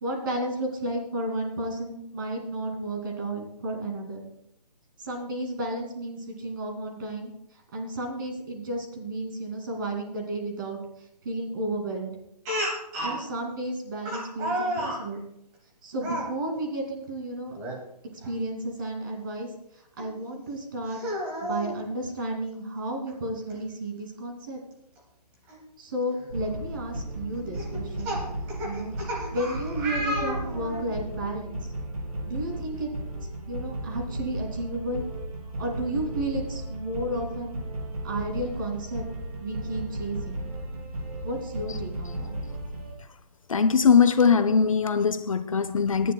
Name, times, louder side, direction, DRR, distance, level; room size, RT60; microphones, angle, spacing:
voice 1, 0.0-4.2 5.0-7.3 7.7-10.8 11.2-12.1 13.0-15.2 15.8-17.6 18.2-19.5 20.0-21.0 21.4-24.6 25.8-28.2 28.6-28.9 29.3-31.7 32.2-32.9 33.5-35.0 35.6-37.6 38.0-39.0 39.4-40.4 41.2-42.3, right 1 dB, 30° right, 2.6 m, -32 dB
Speech, 12.5-13.2 14.1-15.0 16.0-16.3 17.5-17.8 18.2-18.3 20.0-20.1 20.9-21.8 23.1-23.2 23.5-23.6 25.5-25.6 26.2-26.5 27.6-30.9, equal, 10° right, 1.0 m, -32 dB
sound 1, 26.3-42.9, right 1 dB, 60° right, 3.4 m, -35 dB
voice 2, 43.5-46.1, left 6 dB, 50° left, 0.7 m, -21 dB
23.0 x 10.0 x 2.3 m
hypercardioid pair, 175°, 21 cm